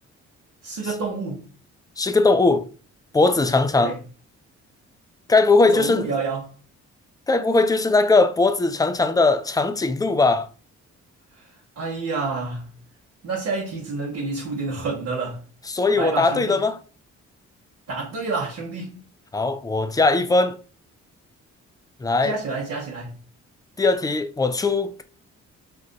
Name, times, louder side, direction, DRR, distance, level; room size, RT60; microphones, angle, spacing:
voice 1, 0.6-1.5 3.8-4.0 5.7-6.5 11.4-11.5 11.8-12.7 13.2-15.4 15.9-16.6 17.9-19.0 22.2-23.2, right 4 dB, 55° right, 0.9 m, -29 dB
voice 2, 2.0-2.7 3.1-3.9 5.3-6.1 7.3-10.5 15.7-16.8 19.3-20.6 22.0-22.3 23.8-25.0, left 3 dB, 15° left, 0.3 m, -19 dB
2.5 x 2.2 x 3.8 m
supercardioid pair, 60°, 31 cm